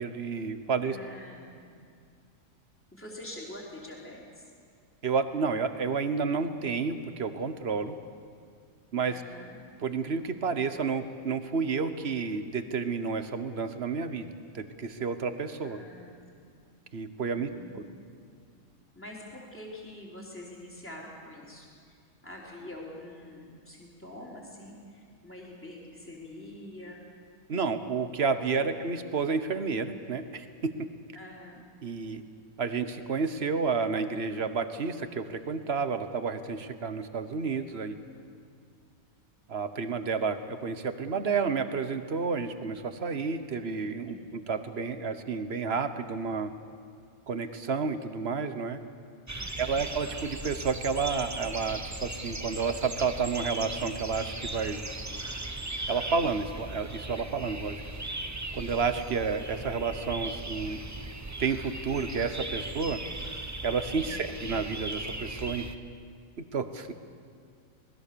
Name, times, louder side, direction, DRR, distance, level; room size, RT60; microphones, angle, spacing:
voice 1, 0.0-1.0 5.0-8.0 8.9-9.2 9.8-15.8 16.9-17.8 27.5-30.7 31.8-32.2 32.6-38.0 39.5-46.5 47.3-48.8 49.6-54.8 55.9-57.8 58.5-60.8 61.4-63.0 63.6-65.6 66.5-66.9, right 5 dB, 50° right, 10 dB, 1.3 m, -30 dB
voice 2, 0.8-1.6 2.9-4.4 9.1-9.6 15.6-16.1 17.3-17.8 19.0-22.0 22.2-27.0 28.5-28.7 31.1-31.6 44.1-44.3 49.4-49.8, left 1 dB, 10° left, -3 dB, 3.9 m, -45 dB
sound 1, 49.3-65.8, right 2 dB, 15° right, 0.7 m, -38 dB
26.0 x 20.0 x 6.9 m, 2.2 s
omnidirectional pair, 1.5 m